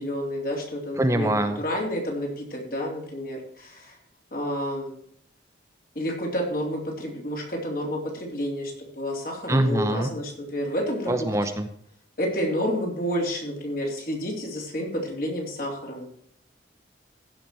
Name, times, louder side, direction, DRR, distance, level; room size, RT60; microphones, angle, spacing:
voice 1, 0.0-3.9 4.3-4.9 5.9-11.3 12.2-16.1, equal, 50° left, 0 dB, 3.5 m, -30 dB
voice 2, 1.0-1.6 9.5-10.1 11.1-11.7, right 1 dB, 15° right, 7 dB, 0.8 m, -23 dB
15.5 x 5.9 x 4.6 m, 0.68 s
head